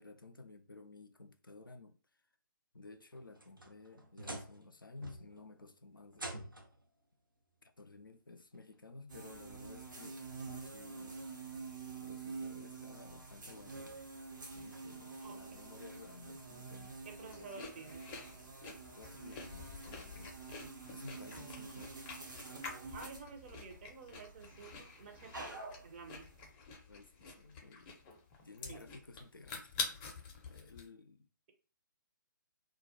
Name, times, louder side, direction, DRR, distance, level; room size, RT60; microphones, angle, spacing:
voice 1, 0.0-2.0 2.7-6.4 7.6-10.2 10.6-11.2 12.0-14.0 14.5-17.9 18.9-20.3 20.9-21.9 26.9-28.0 28.4-31.3, left 3 dB, 85° left, 0.4 m, -54 dB
sound 1, 3.1-4.7 5.0-5.5 6.1-6.8 8.0-8.1 8.7-8.8 10.4-10.5, right 1 dB, 90° right, 0.5 m, -47 dB
sound 2, 9.1-26.5, right 4 dB, 65° right, 0.9 m, -48 dB
voice 2, 17.1-18.0 21.3-21.6 22.9-25.6 25.8-26.3 28.7-28.9, right 4 dB, 30° right, 0.6 m, -51 dB
sound 3, 17.3-30.9, left 4 dB, 20° left, 0.5 m, -47 dB
2.2 x 2.1 x 2.8 m
figure-of-eight pair, 135°, 11 cm